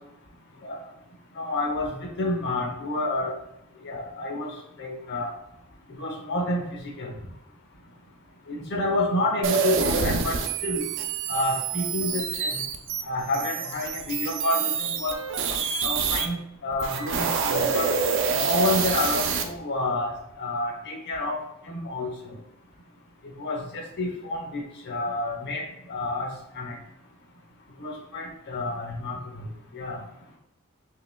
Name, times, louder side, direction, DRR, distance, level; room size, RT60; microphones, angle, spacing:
voice 1, 1.4-3.3 3.8-4.5 4.8-5.3 6.0-7.1 8.5-10.8 11.3-12.6 13.1-15.2 15.8-17.9 18.4-20.1 20.4-21.4 21.7-22.1 23.4-25.6 25.9-26.3 26.6-26.7 27.8-29.2 29.7-30.0, left 2 dB, 50° left, 1 dB, 0.9 m, -29 dB
sound 1, 9.4-16.3 16.7-19.4, right 5 dB, 60° right, 0.5 m, -27 dB
4.9 x 3.1 x 2.2 m, 0.84 s
head